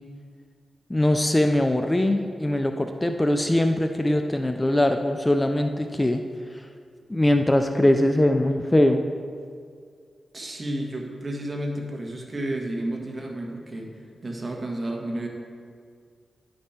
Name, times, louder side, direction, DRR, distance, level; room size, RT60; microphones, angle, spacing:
voice 1, 0.9-6.2 7.1-9.0, left 1 dB, 15° left, 6 dB, 0.4 m, -21 dB
voice 2, 10.3-13.9 14.2-15.3, right 1 dB, 40° right, 0 dB, 1.5 m, -31 dB
10.5 x 5.3 x 4.4 m, 2.1 s
cardioid pair, 65°, 0 cm